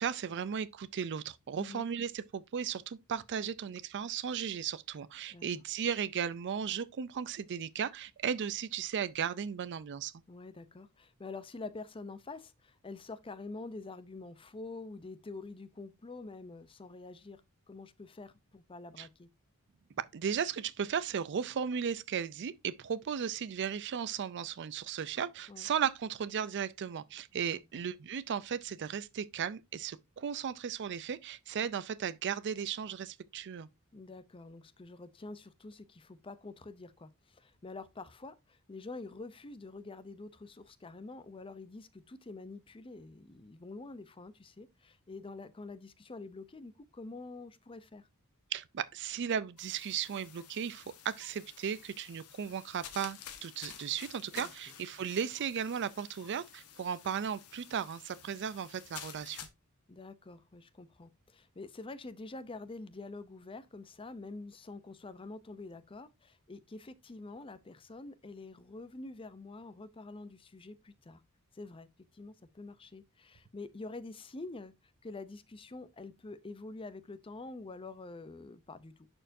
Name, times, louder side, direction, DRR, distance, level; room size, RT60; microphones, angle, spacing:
voice 1, 0.0-10.1 19.0-19.1 20.0-33.7 48.5-59.4, right 7 dB, 55° right, 0.4 m, -36 dB
voice 2, 10.3-17.4 17.7-19.3 25.5-25.7 27.7-27.8 33.9-48.1 54.3-54.5 59.9-71.2 71.5-71.9 72.1-74.7 75.0-79.1, left 3 dB, 25° left, 0.6 m, -47 dB
sound 1, 49.6-59.5, left 8 dB, 85° left, 1.2 m, -51 dB
11.0 x 4.5 x 2.6 m
head